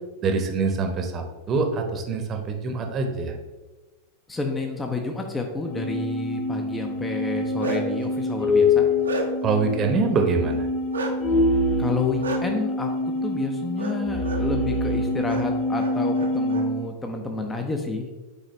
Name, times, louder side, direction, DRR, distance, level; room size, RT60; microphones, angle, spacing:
voice 1, 0.2-3.4 9.4-10.7, right 4 dB, 30° right, 4 dB, 0.9 m, -24 dB
voice 2, 4.3-8.8 11.8-18.1, left 3 dB, 10° left, 3 dB, 0.7 m, -30 dB
sound 1, 5.6-16.8, left 2 dB, 30° left, 1.4 m, -25 dB
Bark, 7.3-8.0 8.5-9.6 10.9-11.1 12.2-12.4 13.8-14.0 14.2-14.4 15.2-15.4 15.8-16.6, right 3 dB, 70° right, 0.8 m, -31 dB
9.0 x 4.0 x 3.2 m, 1.2 s
figure-of-eight pair, 90°, 0 cm